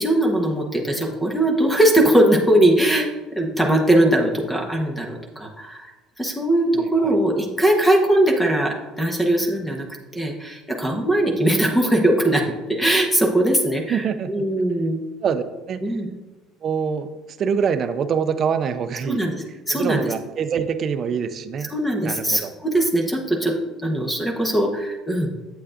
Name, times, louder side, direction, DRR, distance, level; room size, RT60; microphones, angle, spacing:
voice 1, 0.0-5.9 6.2-9.9 10.1-12.4 12.7-15.0 15.8-16.1 19.1-20.0 21.7-23.5 23.8-25.3, right 1 dB, 5° left, 1 dB, 1.0 m, -20 dB
voice 2, 6.7-7.1 13.9-14.4 15.2-15.8 16.6-17.1 17.4-19.2 19.7-21.7 22.0-22.5, right 7 dB, 45° right, 10 dB, 0.6 m, -25 dB
8.4 x 7.9 x 2.5 m, 1.2 s
cardioid pair, 115°, 0 cm